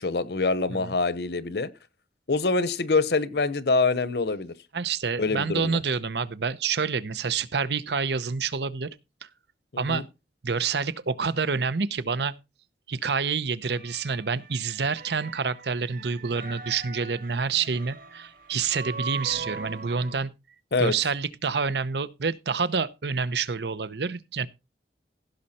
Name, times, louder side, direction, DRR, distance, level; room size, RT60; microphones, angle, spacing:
voice 1, 0.0-1.7 2.3-4.5 5.2-5.8 9.7-10.0 20.7-20.9, left 3 dB, 70° left, 0.9 m, -25 dB
voice 2, 4.7-8.9 9.2-9.3 9.8-10.0 10.4-12.3 12.9-20.3 20.8-24.5, right 5 dB, 75° right, 0.8 m, -28 dB
sound 1, 13.7-20.2, right 4 dB, 50° right, 2.3 m, -40 dB
16.0 x 6.5 x 4.2 m
head